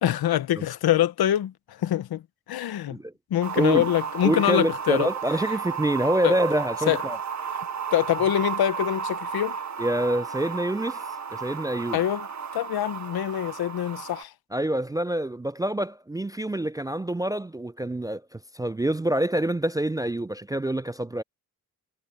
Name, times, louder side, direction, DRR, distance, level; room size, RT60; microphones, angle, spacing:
voice 1, 0.0-2.2 2.5-3.0 3.3-5.1 6.2-6.3 6.9-7.0 7.9-9.6 11.9-12.3 12.5-14.3, left 11 dB, 80° left, 1.0 m, -24 dB
sound 1, 3.4-14.2, right 7 dB, 50° right, 1.3 m, -33 dB
voice 2, 3.6-3.9 4.2-7.2 9.8-11.0 11.3-12.0 14.5-21.2, right 1 dB, 10° right, 0.3 m, -26 dB
supercardioid pair, 45°, 37 cm